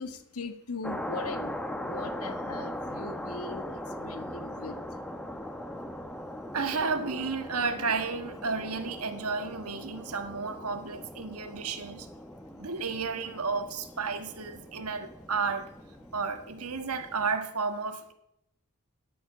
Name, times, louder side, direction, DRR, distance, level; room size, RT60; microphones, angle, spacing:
voice 1, 0.0-3.6 4.0-4.8, left 3 dB, 85° left, 1.5 m, -40 dB
sound 1, 0.8-17.4, left 1 dB, 5° left, 0.9 m, -40 dB
voice 2, 6.5-12.1 12.6-15.7 16.1-18.1, right 4 dB, 85° right, 1.4 m, -32 dB
11.5 x 11.0 x 7.7 m
head